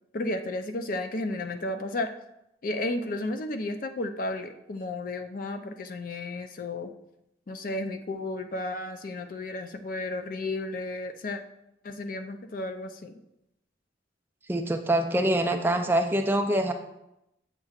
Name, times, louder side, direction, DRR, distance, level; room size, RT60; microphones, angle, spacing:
voice 1, 0.1-2.1 2.6-6.9 7.5-11.4 11.8-13.1, left 2 dB, 50° left, 7 dB, 0.4 m, -33 dB
voice 2, 14.5-16.7, right 1 dB, 10° right, 5 dB, 0.4 m, -25 dB
7.4 x 6.5 x 2.4 m, 0.86 s
head